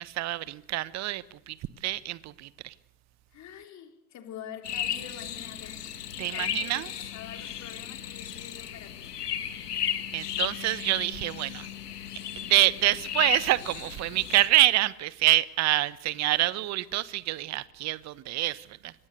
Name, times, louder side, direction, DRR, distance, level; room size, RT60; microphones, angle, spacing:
voice 1, 0.0-1.6 1.8-2.7 6.2-6.9 10.1-11.7 12.4-18.9, right 16 dB, 35° right, 1.1 m, -26 dB
voice 2, 3.3-5.8 6.1-9.2, left 8 dB, 35° left, 3.7 m, -45 dB
sound 1, 4.6-14.5, left 10 dB, 70° left, 2.4 m, -35 dB
29.0 x 24.5 x 6.7 m
figure-of-eight pair, 85°, 49 cm